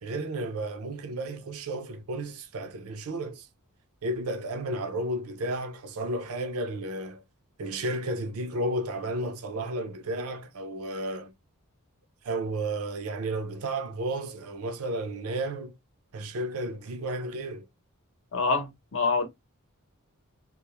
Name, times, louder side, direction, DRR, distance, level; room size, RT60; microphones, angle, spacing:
voice 1, 0.0-3.5 4.0-7.2 7.6-11.3 12.2-15.8 16.1-17.7, right 1 dB, 70° right, 0.5 m, -33 dB
voice 2, 18.3-19.3, left 4 dB, 60° left, 0.7 m, -26 dB
2.3 x 2.0 x 2.9 m
head